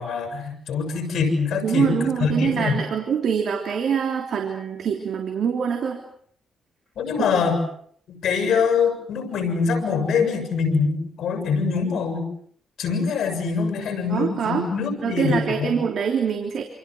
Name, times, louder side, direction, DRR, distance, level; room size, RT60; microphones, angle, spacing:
voice 1, 0.0-2.8 7.0-7.6 8.1-12.3 12.8-15.7, left 5 dB, 75° left, 5 dB, 6.7 m, -24 dB
voice 2, 1.6-6.0 14.1-14.7 15.0-16.6, right 7 dB, 65° right, 4 dB, 3.2 m, -24 dB
28.0 x 27.5 x 6.3 m, 0.63 s
wide cardioid pair, 145°, 0 cm